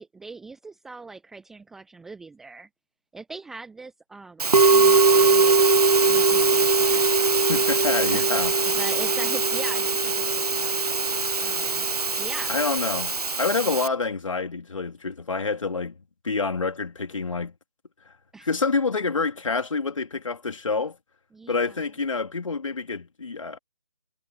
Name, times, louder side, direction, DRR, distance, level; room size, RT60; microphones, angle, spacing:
voice 1, 0.0-2.7 3.1-7.1 8.1-8.3 8.7-10.7 11.4-11.9 12.2-12.6 18.3-18.5 21.3-21.8, right 3 dB, ahead, 0.8 m, -41 dB
Musical instrument, 4.4-13.9, right 4 dB, 70° right, 0.8 m, -21 dB
voice 2, 7.5-8.5 12.5-16.0 16.2-17.5 18.4-21.0 21.5-23.6, left 4 dB, 55° left, 3.6 m, -27 dB
figure-of-eight pair, 150°, 20 cm